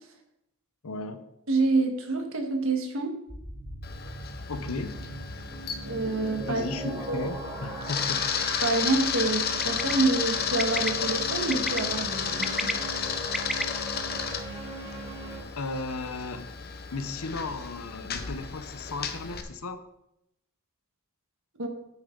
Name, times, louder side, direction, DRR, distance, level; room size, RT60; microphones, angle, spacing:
voice 1, 0.8-1.2 4.5-5.0 6.4-8.3 15.6-16.5 16.9-19.8, left 3 dB, 75° left, 10 dB, 0.9 m, -35 dB
voice 2, 1.5-3.1 5.8-7.3 8.6-12.8 21.6-21.7, right 3 dB, 65° right, 4 dB, 1.6 m, -27 dB
sound 1, 3.3-15.4, right 2 dB, 20° right, 4.1 m, -39 dB
Camera, 3.8-19.4, left 7 dB, 45° left, 0.8 m, -33 dB
Bird, 9.6-9.9 10.6-10.9 11.5-11.8 12.3-13.6, equal, ahead, 0.4 m, -31 dB
9.3 x 8.6 x 3.9 m, 0.83 s
head